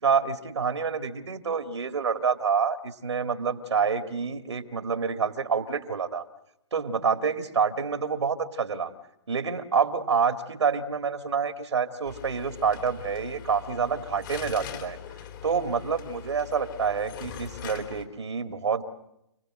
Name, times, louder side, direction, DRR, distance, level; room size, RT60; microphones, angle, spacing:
voice 1, 0.0-6.2 6.7-8.9 9.3-15.0 15.4-18.8, right 6 dB, 80° right, 7 dB, 2.3 m, -27 dB
sound 1, 12.0-18.1, left 9 dB, 45° left, 3.3 m, -42 dB
29.5 x 19.0 x 7.9 m, 0.84 s
hypercardioid pair, 130°, 14 cm